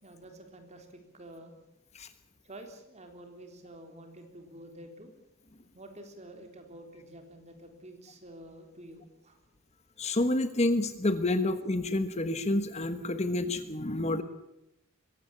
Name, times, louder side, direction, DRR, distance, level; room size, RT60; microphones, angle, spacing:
voice 1, 0.0-1.5 2.4-5.1 5.7-9.4 11.4-11.5, right 1 dB, 30° right, 5 dB, 3.7 m, -49 dB
voice 2, 10.0-14.2, left 2 dB, 30° left, 11 dB, 1.3 m, -29 dB
23.0 x 16.5 x 8.6 m, 0.87 s
head